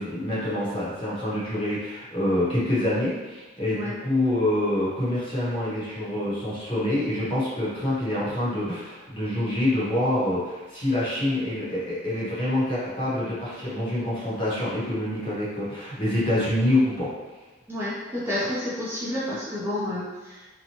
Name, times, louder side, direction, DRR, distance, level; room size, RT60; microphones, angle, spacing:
voice 1, 0.0-17.1, left 1 dB, 30° left, -8 dB, 0.9 m, -26 dB
voice 2, 17.7-20.5, left 1 dB, 10° right, -10 dB, 0.6 m, -30 dB
2.8 x 2.2 x 2.9 m, 1.2 s
head